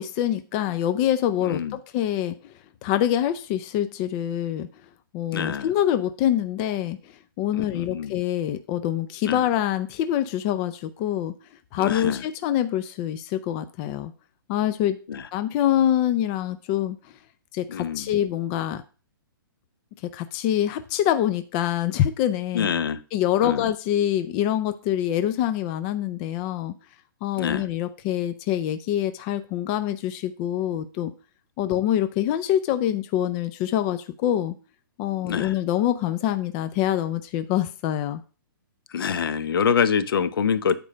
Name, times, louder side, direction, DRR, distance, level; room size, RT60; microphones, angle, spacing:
voice 1, 0.0-2.5 2.8-4.7 5.1-11.3 11.7-14.1 14.5-15.0 15.3-17.0 17.5-18.8 20.0-22.7 23.1-26.7 27.2-31.1 31.6-34.5 35.0-38.2, left 11 dB, 25° left, 10 dB, 0.5 m, -25 dB
voice 2, 1.4-1.7 5.3-5.7 7.5-8.2 9.3-9.4 11.8-12.2 15.1-15.2 17.7-18.1 22.5-23.0 23.4-23.7 27.4-27.6 35.2-35.5 38.9-40.8, left 7 dB, 70° left, 13 dB, 0.8 m, -25 dB
8.6 x 4.5 x 5.1 m, 0.35 s
hypercardioid pair, 155°, 12 cm